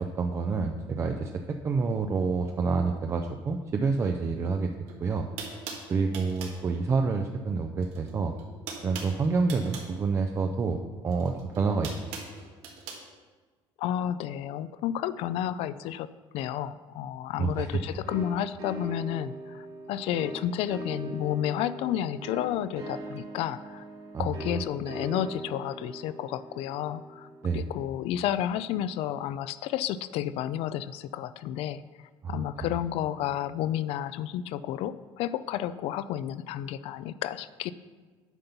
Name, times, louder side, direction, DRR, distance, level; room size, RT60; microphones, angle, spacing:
voice 1, 0.0-4.7 5.0-5.3 5.9-8.3 8.8-12.1 17.4-17.7 24.1-24.6 27.4-27.7 32.2-32.4, right 4 dB, 25° right, 4 dB, 0.4 m, -28 dB
sound 1, 4.9-5.0 5.4-6.6 7.8-8.1 8.4-9.9 11.1-13.0, right 5 dB, 90° right, 1.6 m, -40 dB
voice 2, 13.8-16.1 16.3-23.8 24.2-27.3 27.5-31.8 32.3-37.7, left 11 dB, 70° left, 15 dB, 0.4 m, -31 dB
sound 2, 18.1-28.5, right 1 dB, 65° right, 2.7 m, -41 dB
9.1 x 5.3 x 5.8 m, 1.4 s
cardioid pair, 160°, 10 cm